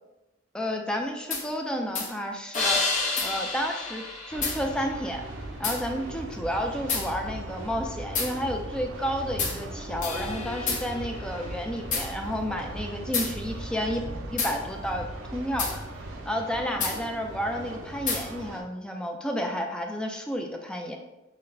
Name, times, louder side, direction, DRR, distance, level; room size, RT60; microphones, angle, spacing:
voice 1, 0.5-2.8 3.2-5.2 5.6-14.0 14.3-15.1 15.3-15.8 16.3-21.0, equal, 5° left, 2 dB, 0.3 m, -31 dB
sound 1, 1.3-1.5 2.0-2.1 2.5-5.1 5.6-5.8 6.9-7.1 8.2-8.3 9.4-9.6 10.0-12.1 13.1-13.3 14.4-14.6 15.6-15.8 16.8-17.0 18.1-18.3, left 4 dB, 40° left, 0.7 m, -29 dB
sound 2, 4.3-18.6, right 1 dB, 80° right, 0.5 m, -38 dB
5.7 x 2.1 x 2.6 m, 0.98 s
head